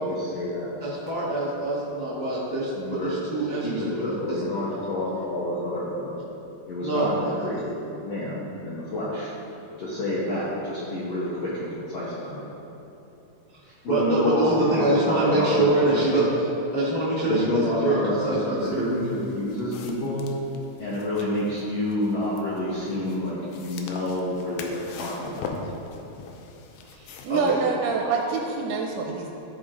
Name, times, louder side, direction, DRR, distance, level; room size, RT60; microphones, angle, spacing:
voice 1, 0.0-0.7 2.8-3.2 3.6-6.1 6.7-7.7 8.0-9.3 9.8-12.4 13.6-16.3 17.3-20.3 20.8-25.5, left 1 dB, 70° left, -8 dB, 1.5 m, -28 dB
voice 2, 0.8-4.4 6.8-7.1 13.8-16.3 16.7-18.8 26.9-27.6, right 2 dB, 50° left, -10 dB, 0.9 m, -25 dB
sound 1, 18.6-27.5, left 4 dB, 85° left, 2.4 m, -41 dB
voice 3, 27.2-29.3, right 4 dB, 80° right, 2 dB, 2.0 m, -26 dB
13.0 x 4.3 x 3.7 m, 2.9 s
omnidirectional pair, 4.0 m